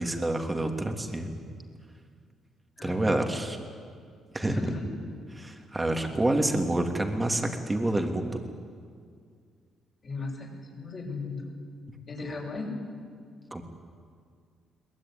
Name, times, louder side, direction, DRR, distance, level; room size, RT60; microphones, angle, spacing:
voice 1, 0.0-1.4 2.8-3.6 4.3-4.7 5.4-8.4 13.5-13.6, right 1 dB, 15° right, 4 dB, 3.0 m, -28 dB
voice 2, 2.8-3.1 4.4-4.9 10.0-11.5 12.1-12.7, left 3 dB, 40° left, -3 dB, 6.6 m, -36 dB
23.0 x 20.0 x 9.7 m, 2.2 s
cardioid pair, 90°, 0 cm